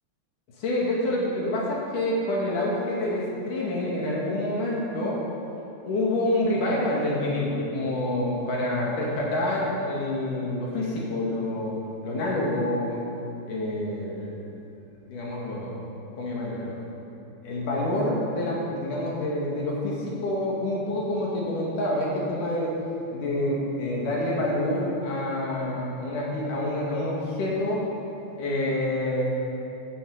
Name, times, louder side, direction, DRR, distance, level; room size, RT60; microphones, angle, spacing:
voice 1, 0.6-5.2 5.9-11.8 12.0-13.0 13.5-14.3 15.1-15.8 16.2-16.8 17.4-22.8 23.1-27.8 28.4-29.3, left 1 dB, 50° left, -4 dB, 2.9 m, -27 dB
15.0 x 11.0 x 4.9 m, 2.8 s
omnidirectional pair, 5.5 m